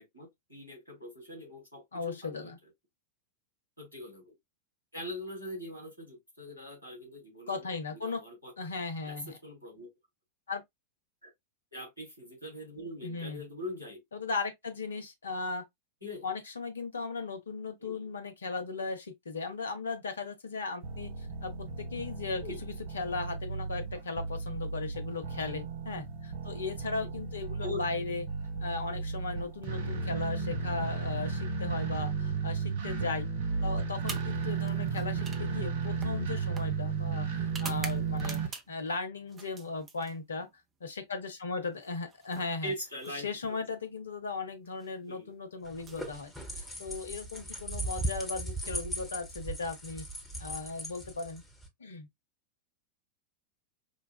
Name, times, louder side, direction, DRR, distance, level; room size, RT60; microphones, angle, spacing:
voice 1, 0.0-2.5 3.8-4.3 4.9-8.7 9.0-9.9 11.2-11.3 11.7-14.0 16.0-16.3 17.8-18.1 22.4-22.6 27.0-27.1 27.6-28.1 28.9-29.0 35.1-35.2 42.6-43.6 45.1-45.3, left 1 dB, 85° right, 2.5 m, -42 dB
voice 2, 1.9-2.6 7.5-8.2 8.6-9.4 10.5-10.6 13.0-13.4 14.1-15.6 16.2-28.2 28.6-33.3 33.6-38.4 38.7-40.5 40.8-42.7 43.2-50.0 50.4-51.4 51.8-52.1, left 4 dB, 70° left, 0.8 m, -37 dB
sound 1, 20.8-38.5, right 5 dB, 60° right, 1.1 m, -34 dB
sound 2, 34.0-38.9 39.3-40.5 41.7-43.6 44.6-44.9 45.7-46.9, right 5 dB, 20° right, 0.7 m, -47 dB
sound 3, 45.6-51.7, right 1 dB, 10° left, 1.2 m, -38 dB
5.0 x 2.3 x 2.3 m
figure-of-eight pair, 90°, 0 cm